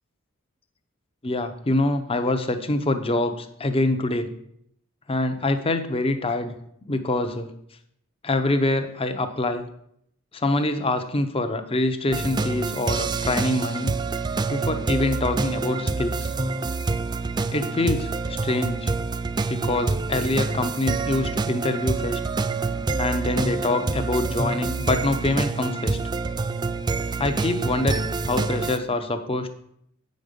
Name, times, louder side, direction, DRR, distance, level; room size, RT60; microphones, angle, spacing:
voice 1, 1.2-4.3 5.1-6.5 6.9-7.5 8.2-9.7 10.3-13.9 14.5-16.3 17.5-18.9 19.5-22.2 23.0-26.0 27.2-29.5, left 2 dB, 25° left, 8 dB, 0.7 m, -25 dB
sound 1, 12.1-28.8, right 3 dB, 20° right, 0.3 m, -27 dB
8.3 x 5.3 x 6.6 m, 0.71 s
head